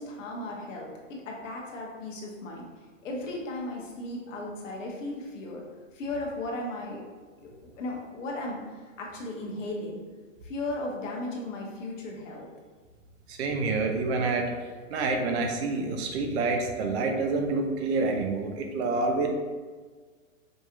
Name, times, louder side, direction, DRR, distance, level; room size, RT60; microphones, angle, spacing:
voice 1, 0.0-2.6 3.0-5.6 5.9-7.1 7.4-10.0 10.4-12.5, left 2 dB, 70° left, -1 dB, 1.2 m, -36 dB
voice 2, 13.3-14.5 14.9-19.3, right 3 dB, 55° right, 3 dB, 0.7 m, -27 dB
5.2 x 2.8 x 2.5 m, 1.5 s
hypercardioid pair, 125°, 39 cm